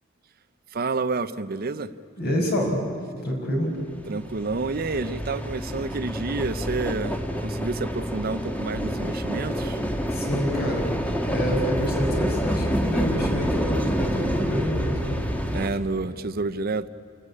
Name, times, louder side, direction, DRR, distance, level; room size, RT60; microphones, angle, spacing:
voice 1, 0.7-1.9 4.1-9.8 15.5-16.9, right 3 dB, 50° right, 13 dB, 0.6 m, -29 dB
voice 2, 2.2-2.8 3.2-3.7 10.1-10.9 11.2-15.3, equal, 55° left, 1 dB, 5.7 m, -27 dB
sound 1, 3.8-15.7, equal, 10° left, 1.6 m, -28 dB
28.5 x 14.0 x 9.9 m, 2.3 s
head